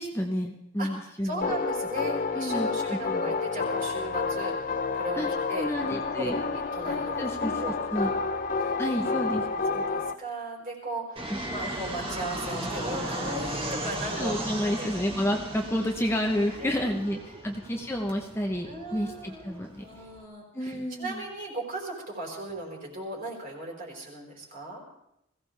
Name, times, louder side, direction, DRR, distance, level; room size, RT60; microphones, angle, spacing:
voice 1, 0.0-1.5 2.3-3.3 5.2-6.4 7.2-7.6 7.9-8.1 8.8-9.5 9.7-9.8 11.3-11.4 14.2-19.8 20.5-21.2, equal, 10° left, 1 dB, 0.9 m, -30 dB
voice 2, 1.2-5.7 6.1-8.2 8.6-14.3 14.6-15.0 16.6-17.5 18.6-24.8, right 1 dB, 40° right, -1 dB, 4.7 m, -37 dB
sound 1, 1.4-10.1, left 4 dB, 40° left, 0.6 m, -29 dB
Fixed-wing aircraft airplane, 11.2-20.2, right 1 dB, 25° right, 2.2 m, -36 dB
21.0 x 16.0 x 3.4 m, 0.83 s
head